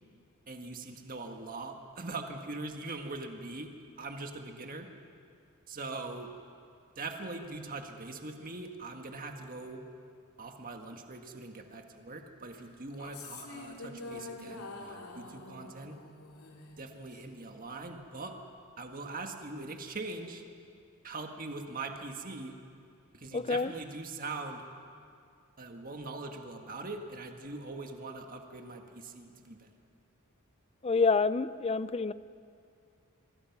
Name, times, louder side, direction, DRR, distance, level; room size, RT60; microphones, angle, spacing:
voice 1, 0.5-3.7 4.0-4.9 5.7-6.3 7.0-9.8 10.4-16.0 16.8-18.3 18.8-20.4 21.0-22.6 23.1-24.7 25.6-29.7, right 3 dB, 40° right, 4 dB, 1.7 m, -42 dB
sound 1, 12.9-17.3, left 3 dB, 80° left, 2.8 m, -46 dB
voice 2, 23.3-23.7 30.8-32.1, left 4 dB, 25° left, 15 dB, 0.4 m, -27 dB
25.5 x 22.5 x 6.0 m, 2.4 s
head